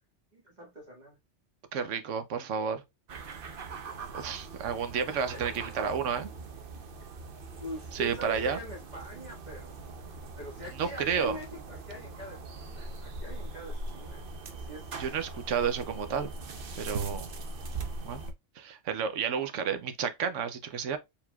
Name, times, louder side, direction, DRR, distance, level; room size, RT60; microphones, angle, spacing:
voice 1, 0.3-1.2 5.3-5.7 7.6-9.8 10.4-15.0, equal, 35° right, 1.8 m, -44 dB
voice 2, 1.7-2.8 4.1-6.3 7.9-8.6 10.8-11.4 15.0-16.3 16.8-17.3 18.0-18.2 18.6-21.0, right 7 dB, 85° right, 1.1 m, -31 dB
sound 1, 3.1-18.3, right 3 dB, 55° right, 0.8 m, -41 dB
4.6 x 3.6 x 2.3 m
omnidirectional pair, 1.2 m